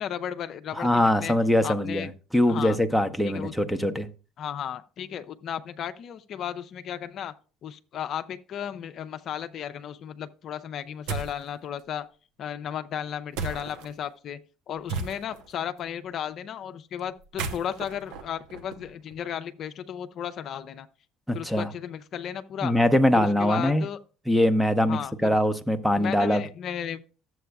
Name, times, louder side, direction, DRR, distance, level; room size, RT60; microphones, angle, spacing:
voice 1, 0.0-1.4 1.6-2.1 2.5-2.8 3.2-3.5 4.4-7.3 7.6-12.1 12.4-14.4 14.7-20.9 21.3-22.7 23.1-24.0 24.9-25.3 26.0-27.0, left 9 dB, 55° left, 0.5 m, -34 dB
voice 2, 0.8-4.1 21.3-21.7 22.6-23.9 24.3-26.4, left 1 dB, ahead, 0.7 m, -23 dB
sound 1, 11.1-11.4 13.3-13.9 14.9-15.5 17.2-19.1, right 4 dB, 75° right, 0.9 m, -34 dB
11.5 x 7.6 x 2.3 m
hypercardioid pair, 70°, 0 cm